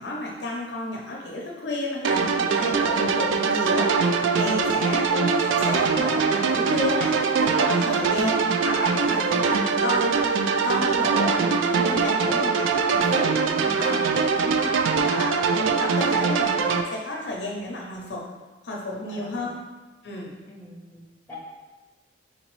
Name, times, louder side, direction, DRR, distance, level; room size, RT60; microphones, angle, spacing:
voice 1, 0.0-10.3 10.6-13.4 13.8-14.0 14.6-14.7 15.1-18.3 18.6-19.5 20.0-20.3, left 2 dB, 60° left, -1 dB, 0.6 m, -32 dB
sound 1, 2.0-16.8, right 5 dB, 85° right, 0.3 m, -22 dB
voice 2, 12.0-12.4 13.6-15.2 18.9-19.5 20.4-21.3, left 1 dB, 10° left, -5 dB, 0.9 m, -40 dB
4.0 x 3.9 x 3.1 m, 1.2 s
head